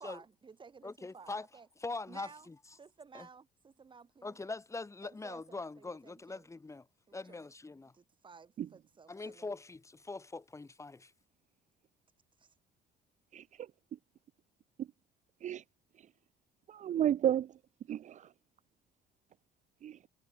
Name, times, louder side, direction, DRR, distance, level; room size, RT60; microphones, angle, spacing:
voice 1, 0.0-1.7 2.1-2.5 2.8-4.4 5.0-6.5 7.1-7.4 7.7-9.5 12.4-12.5, right 5 dB, 30° right, 2.5 m, -55 dB
voice 2, 0.8-1.5 1.8-2.6 3.1-3.3 4.2-6.9 7.1-7.9 9.1-11.1, left 3 dB, 15° left, 3.4 m, -42 dB
voice 3, 13.3-13.7 14.8-14.9 15.4-15.6 16.8-17.5 17.9-18.3 19.8-20.0, right 10 dB, 45° right, 0.6 m, -32 dB
cardioid pair, 110°, 17 cm